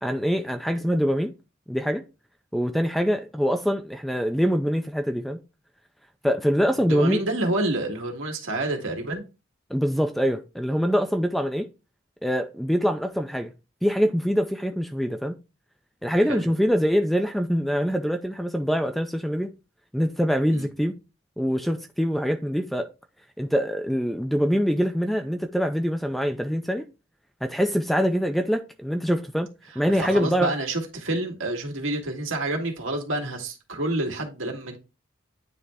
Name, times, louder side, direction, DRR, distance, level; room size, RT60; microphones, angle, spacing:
voice 1, 0.0-1.3 1.7-2.0 2.5-5.4 6.2-7.2 9.7-11.7 12.2-13.5 13.8-15.3 16.0-19.5 19.9-20.9 21.4-22.9 23.4-26.9 27.4-29.5 29.8-30.5, equal, ahead, 0.4 m, -24 dB
voice 2, 6.7-9.2 16.3-16.4 20.5-20.7 29.9-34.8, right 2 dB, 75° right, 1.8 m, -28 dB
9.4 x 3.3 x 3.4 m
head